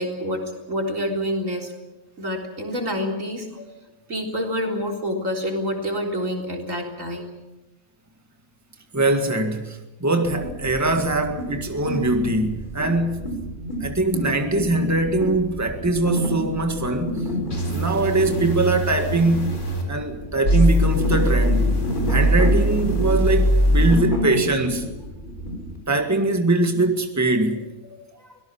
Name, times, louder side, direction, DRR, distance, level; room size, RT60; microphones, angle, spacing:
voice 1, 0.0-1.7 2.2-3.7 4.1-7.3 27.9-28.4, equal, 75° right, 4.2 m, -28 dB
voice 2, 8.9-13.4 13.8-17.3 17.7-19.6 19.9-21.7 22.1-24.9 25.9-27.6, right 2 dB, 10° right, 1.9 m, -22 dB
sound 1, 10.2-25.8, equal, 35° left, 4.9 m, -30 dB
sound 2, 17.5-19.8 20.4-24.0, equal, 65° left, 4.8 m, -21 dB
24.5 x 18.0 x 7.3 m
omnidirectional pair, 1.4 m